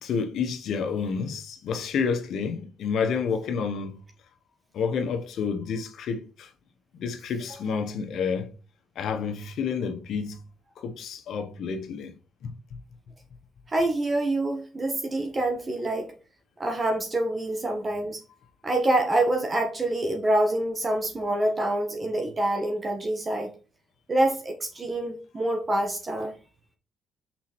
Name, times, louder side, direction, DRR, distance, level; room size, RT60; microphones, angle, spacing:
voice 1, 0.0-4.0 4.7-6.5 6.9-8.5 8.9-10.4 10.8-12.1 12.4-12.5, left 6 dB, 70° left, 1.2 m, -29 dB
voice 2, 13.7-16.1 16.6-18.2 18.6-23.5 24.1-26.3, right 1 dB, 30° right, 1.4 m, -26 dB
5.9 x 4.2 x 4.5 m
cardioid pair, 90°, 0 cm